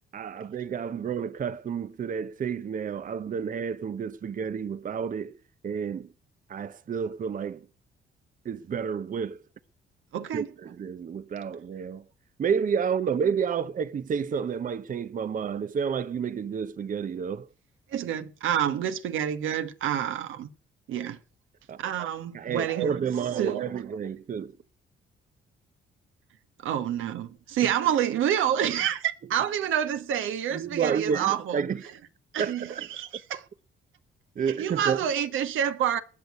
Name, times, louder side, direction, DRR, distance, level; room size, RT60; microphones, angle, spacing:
voice 1, 0.1-5.4 5.6-6.1 6.5-7.7 8.4-9.4 10.3-12.1 12.4-17.5 21.7-21.8 22.3-24.6 27.6-27.7 30.5-32.0 32.4-32.9 34.4-35.0, right 7 dB, 40° right, 0.7 m, -30 dB
voice 2, 10.1-10.5 17.9-20.5 20.9-21.2 21.8-23.7 26.6-31.6 32.3-33.4 34.5-36.0, right 10 dB, 85° right, 1.4 m, -28 dB
19.5 x 6.5 x 9.7 m
cardioid pair, 90°, 20 cm